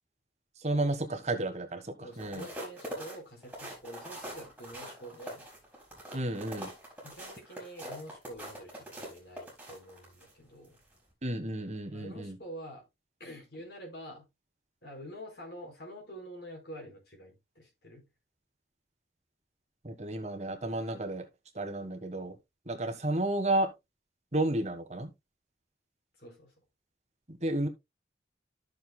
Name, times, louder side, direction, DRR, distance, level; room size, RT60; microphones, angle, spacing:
voice 1, 0.6-2.5 6.1-6.7 11.2-12.4 19.8-21.3 21.5-22.3 22.7-23.7 24.3-25.1 27.3-27.7, right 1 dB, 40° right, 1.4 m, -32 dB
voice 2, 2.0-5.4 7.0-10.8 11.9-12.8 13.2-14.3 14.8-18.1 26.2-26.5, equal, 65° left, 4.5 m, -47 dB
sound 1, 2.1-10.3 10.8-11.0, equal, 10° right, 3.9 m, -43 dB
13.0 x 6.7 x 2.2 m
head